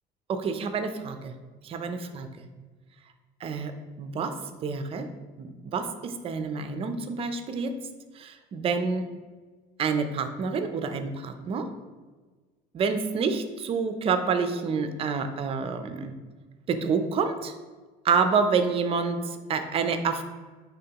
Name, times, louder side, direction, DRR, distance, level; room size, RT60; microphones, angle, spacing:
voice 1, 0.3-1.3 1.6-2.5 3.4-4.3 4.6-5.1 5.4-7.7 8.2-9.1 9.8-11.7 12.7-16.1 16.7-17.5 18.0-20.2, right 5 dB, 35° right, 8 dB, 0.5 m, -28 dB
9.0 x 3.6 x 2.9 m, 1.4 s
cardioid pair, 145°, 17 cm